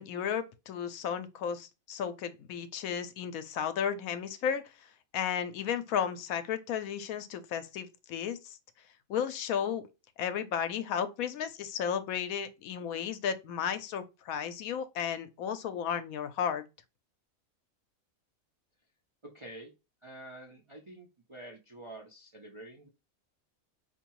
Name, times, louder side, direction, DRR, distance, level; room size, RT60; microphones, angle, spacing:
voice 1, 0.0-4.6 5.1-8.6 9.1-9.8 10.2-16.6, left 8 dB, 80° left, 1.0 m, -34 dB
voice 2, 19.2-19.7 20.0-22.9, right 1 dB, 40° right, 0.4 m, -48 dB
4.4 x 2.6 x 2.9 m
omnidirectional pair, 1.5 m